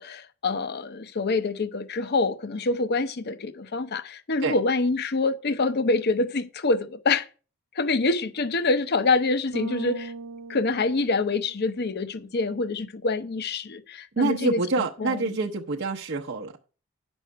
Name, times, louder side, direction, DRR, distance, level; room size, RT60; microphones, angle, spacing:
voice 1, 0.0-7.3 7.7-10.1 10.5-14.6 15.0-15.4, left 3 dB, 50° left, 0.7 m, -26 dB
Bass guitar, 9.5-11.9, right 4 dB, 90° right, 0.5 m, -39 dB
voice 2, 14.2-16.5, right 3 dB, 55° right, 0.7 m, -26 dB
10.0 x 6.2 x 4.6 m
head